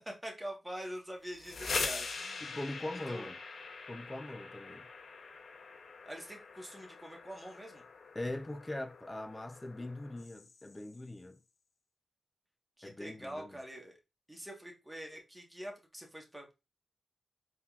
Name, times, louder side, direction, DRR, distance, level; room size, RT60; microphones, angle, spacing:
voice 1, 0.2-2.5 3.1-3.3 6.0-7.8 12.8-14.0 14.3-16.5, equal, 10° right, 1.3 m, -45 dB
sound 1, 1.2-11.0, left 4 dB, 65° left, 0.7 m, -43 dB
voice 2, 2.4-3.4 3.9-4.9 8.1-11.4 12.8-13.6, left 1 dB, 20° left, 0.5 m, -41 dB
4.3 x 3.6 x 2.4 m
cardioid pair, 75°, 0 cm